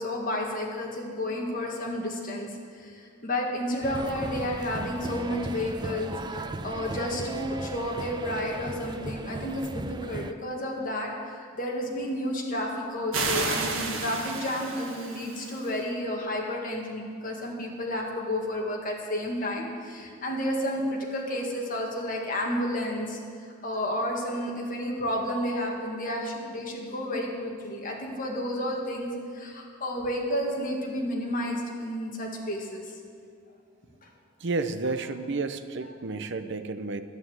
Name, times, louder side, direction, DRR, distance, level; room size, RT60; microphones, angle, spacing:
voice 1, 0.0-2.5 2.8-32.9, left 1 dB, 40° left, -1 dB, 2.0 m, -31 dB
sound 1, 3.8-10.3, right 2 dB, 20° right, 0.4 m, -37 dB
sound 2, 13.1-15.7, right 4 dB, 75° right, 1.5 m, -31 dB
voice 2, 34.4-37.0, right 3 dB, 60° right, 10 dB, 0.7 m, -31 dB
11.0 x 9.3 x 8.0 m, 2.2 s
head